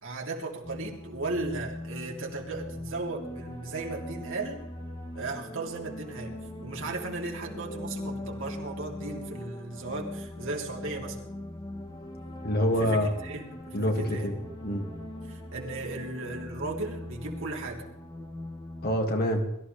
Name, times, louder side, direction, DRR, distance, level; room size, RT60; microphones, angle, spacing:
voice 1, 0.0-4.6 5.1-6.4 6.6-11.2 12.8-14.3 15.2-17.8, right 2 dB, 60° right, 0 dB, 3.0 m, -36 dB
sound 1, 0.6-19.0, left 1 dB, 20° left, 2.3 m, -41 dB
voice 2, 12.4-13.1 13.7-14.4 14.6-14.9 18.8-19.6, equal, 45° left, 3 dB, 2.2 m, -26 dB
22.5 x 14.5 x 3.4 m, 0.81 s
head